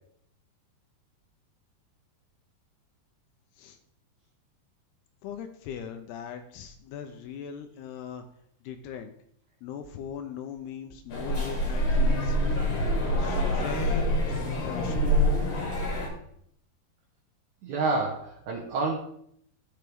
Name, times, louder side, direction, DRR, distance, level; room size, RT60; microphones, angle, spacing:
voice 1, 5.2-8.3 8.6-9.1 9.6-12.4 13.2-15.2, left 8 dB, 85° left, 6 dB, 2.6 m, -40 dB
sound 1, 11.1-16.1, equal, 50° left, 2.7 m, -26 dB
voice 2, 17.6-18.9, right 3 dB, 65° right, -2 dB, 2.0 m, -28 dB
12.0 x 6.4 x 3.5 m, 0.68 s
omnidirectional pair, 4.6 m